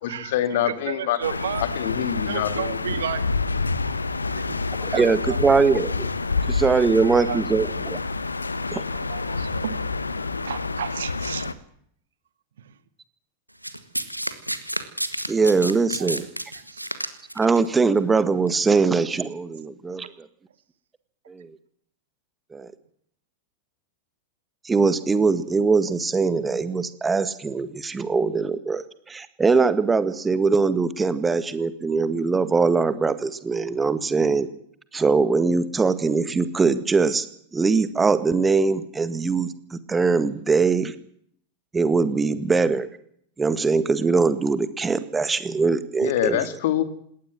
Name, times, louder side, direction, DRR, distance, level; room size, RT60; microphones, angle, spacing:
voice 1, 0.0-1.2 1.6-2.8 46.0-46.8, left 11 dB, 55° left, 12 dB, 2.5 m, -25 dB
voice 2, 0.7-1.6 2.3-3.2 3.8-4.6 4.9-5.0 5.3-5.6 6.4-6.5 7.3-7.5 8.9-9.7 10.5-11.5 16.0-16.1 16.7-16.8, right 9 dB, 65° right, 14 dB, 1.7 m, -32 dB
sound 1, 1.2-11.5, left 3 dB, 80° left, 1.3 m, -28 dB
voice 3, 4.9-6.1 6.5-8.0 8.7-8.8 15.3-16.2 17.4-20.3 21.3-21.5 22.5-22.7 24.6-34.5 34.9-37.3 37.5-40.9 41.7-42.9 43.4-46.4, right 4 dB, 15° right, 14 dB, 1.8 m, -22 dB
Domestic sounds home sounds, 13.6-17.6 18.5-18.6, right 1 dB, 90° right, 1.8 m, -30 dB
20.5 x 18.0 x 7.6 m, 0.66 s
figure-of-eight pair, 90°, 0 cm